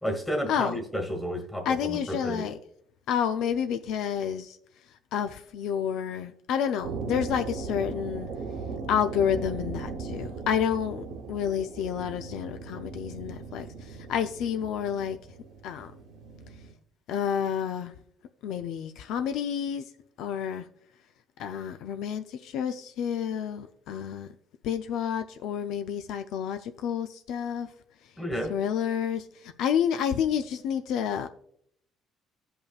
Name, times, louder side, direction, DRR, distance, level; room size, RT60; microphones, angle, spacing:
voice 1, 0.0-2.5 28.2-28.6, equal, 5° left, 1.5 m, -31 dB
voice 2, 1.7-2.6 3.1-4.6 5.1-8.3 8.9-15.2 15.6-15.9 17.1-17.9 18.4-19.8 20.2-20.7 21.4-24.3 24.6-27.7 28.5-31.3, left 8 dB, 75° left, 0.5 m, -29 dB
sound 1, 6.8-16.7, right 4 dB, 70° right, 1.2 m, -38 dB
16.0 x 5.5 x 2.4 m
cardioid pair, 135°, 0 cm